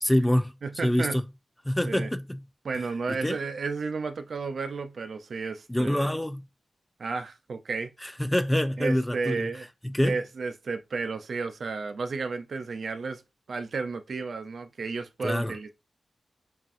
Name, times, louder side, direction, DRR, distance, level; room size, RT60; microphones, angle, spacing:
voice 1, 0.0-0.5 0.8-1.2 1.6-2.4 3.1-3.4 5.7-6.5 8.0-9.5 9.8-10.2 15.2-15.5, left 1 dB, 5° left, 0.4 m, -26 dB
voice 2, 0.6-1.2 1.8-2.1 2.6-6.1 7.0-7.9 8.8-9.7 10.0-13.2 13.5-15.7, right 4 dB, 65° right, 0.5 m, -32 dB
5.6 x 2.5 x 2.6 m
wide cardioid pair, 110°, 0 cm